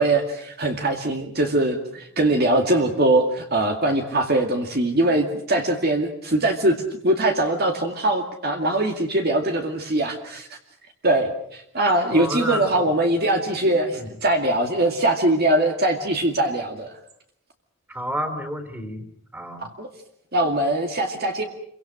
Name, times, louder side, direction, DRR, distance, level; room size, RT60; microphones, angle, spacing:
voice 1, 0.0-10.5 11.0-16.9 19.6-19.9 20.3-21.4, right 1 dB, 45° right, 4 dB, 2.2 m, -22 dB
voice 2, 12.1-12.9 13.9-14.1 17.9-19.1 19.3-19.7, equal, 10° right, 8 dB, 3.6 m, -30 dB
28.0 x 24.0 x 6.1 m, 0.69 s
head